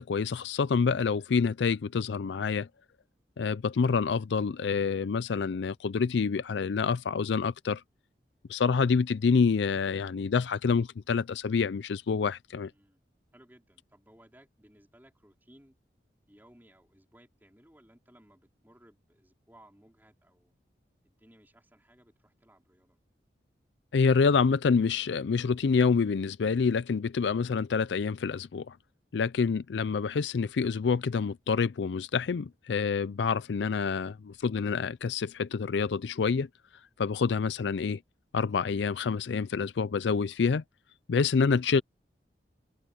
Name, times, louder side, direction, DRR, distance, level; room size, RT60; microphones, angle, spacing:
voice 1, 0.0-2.7 3.4-7.8 8.5-12.7 23.9-28.8 29.1-36.5 37.0-38.0 38.3-40.6 41.1-41.8, left 5 dB, 90° left, 0.4 m, -27 dB
voice 2, 12.6-13.0 13.3-15.8 16.3-20.5 21.0-23.0, right 1 dB, 10° right, 4.5 m, -60 dB
head